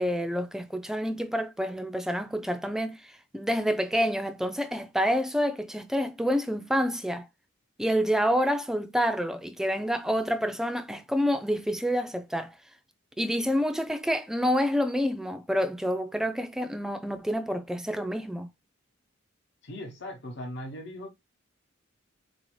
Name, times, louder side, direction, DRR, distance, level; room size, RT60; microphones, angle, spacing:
voice 1, 0.0-7.3 7.8-12.5 13.2-18.5, equal, ahead, 0.3 m, -28 dB
voice 2, 19.6-21.1, left 1 dB, 60° left, 0.9 m, -39 dB
4.0 x 2.7 x 3.1 m
head